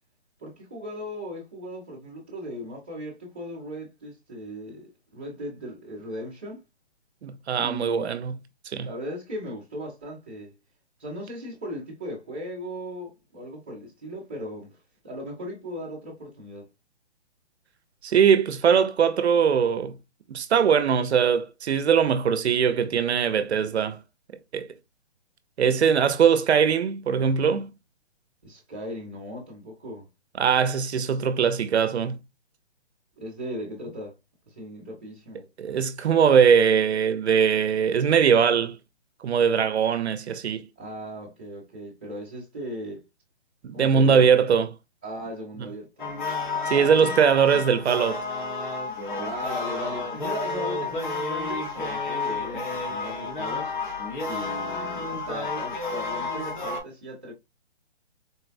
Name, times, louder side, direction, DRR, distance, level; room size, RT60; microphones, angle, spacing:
voice 1, 0.4-6.6 7.6-8.1 8.8-10.6 11.0-14.8 15.0-16.7 28.4-30.1 33.2-34.2 34.5-35.4 40.8-43.1 43.7-44.3 45.0-46.1 46.7-47.2 49.2-53.7 54.2-57.3, equal, 10° right, 0.6 m, -37 dB
voice 2, 7.2-8.4 8.7-8.9 18.0-20.0 20.3-24.0 24.5-24.7 25.6-27.7 30.4-32.2 35.6-38.8 39.2-40.6 43.6-44.7 46.7-48.2, right 7 dB, 75° right, 0.6 m, -21 dB
sound 1, 46.0-56.8, left 3 dB, 45° left, 1.0 m, -31 dB
4.0 x 2.1 x 2.4 m
hypercardioid pair, 175°, 33 cm